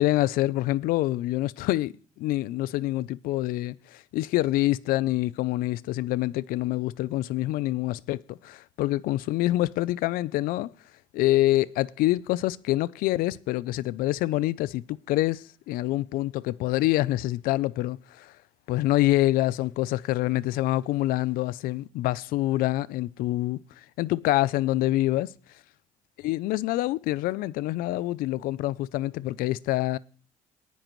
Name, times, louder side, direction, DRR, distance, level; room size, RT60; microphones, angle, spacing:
voice 1, 0.0-10.7 11.1-18.3 18.7-23.6 24.0-25.3 26.2-30.0, left 16 dB, 90° left, 0.5 m, -26 dB
19.0 x 9.3 x 3.1 m
cardioid pair, 105°, 14 cm